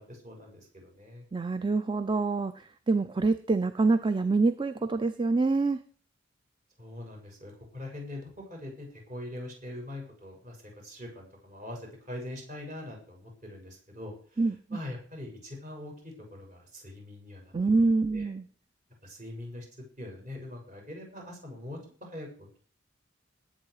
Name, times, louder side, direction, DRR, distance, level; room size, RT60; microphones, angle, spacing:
voice 1, 0.0-1.2 6.8-14.4 14.7-17.5 18.1-18.3 19.0-19.6 20.0-22.6, left 1 dB, 40° right, 0 dB, 6.7 m, -43 dB
voice 2, 1.3-5.8 14.4-14.8 17.5-18.5, right 3 dB, 25° right, 11 dB, 0.6 m, -26 dB
19.5 x 8.5 x 4.9 m, 0.43 s
head